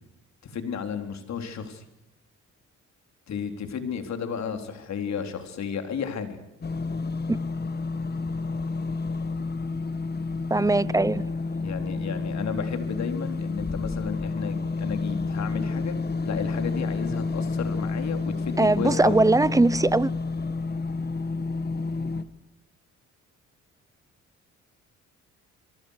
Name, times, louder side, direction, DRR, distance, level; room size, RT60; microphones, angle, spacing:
voice 1, 0.4-1.8 3.3-6.4 11.6-16.0 16.2-19.2, left 6 dB, 65° left, 3.9 m, -33 dB
sound 1, 6.6-22.2, left 3 dB, 35° left, 1.6 m, -30 dB
voice 2, 10.5-11.2 18.6-20.1, right 2 dB, 10° right, 0.9 m, -20 dB
27.0 x 23.0 x 6.6 m
cardioid pair, 90°, 30 cm